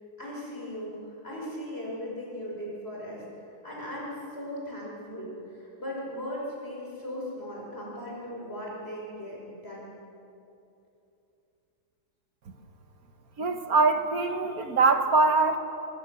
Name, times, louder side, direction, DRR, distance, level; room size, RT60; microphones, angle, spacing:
voice 1, 0.2-3.2 3.6-10.0, equal, 30° left, -4 dB, 5.5 m, -38 dB
voice 2, 13.4-15.6, right 3 dB, 50° right, 7 dB, 1.5 m, -23 dB
25.5 x 18.5 x 6.8 m, 2.8 s
omnidirectional pair, 2.1 m